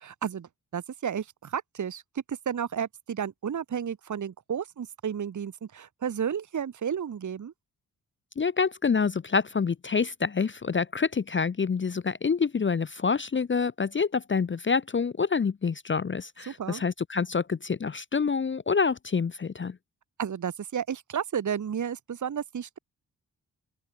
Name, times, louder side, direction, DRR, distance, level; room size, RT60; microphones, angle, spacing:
voice 1, 0.0-2.0 2.3-7.5 16.5-16.8 20.2-22.8, right 8 dB, 50° right, 1.1 m, -32 dB
voice 2, 8.4-19.8, left 5 dB, 30° left, 0.7 m, -27 dB
open air
supercardioid pair, 45°, 38 cm